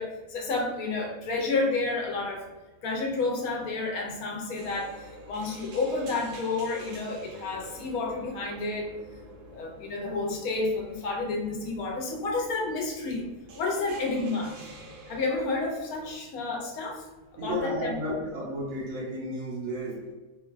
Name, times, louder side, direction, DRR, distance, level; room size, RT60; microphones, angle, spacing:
voice 1, 0.0-2.5 2.8-8.9 9.5-13.3 13.6-14.6 15.1-17.1 17.3-18.1, left 3 dB, 75° left, 0 dB, 1.0 m, -30 dB
sound 1, 4.5-16.2, right 1 dB, 90° right, 1.2 m, -48 dB
voice 2, 17.4-20.1, equal, 65° right, -2 dB, 0.9 m, -33 dB
3.0 x 2.2 x 2.4 m, 1.2 s
omnidirectional pair, 1.6 m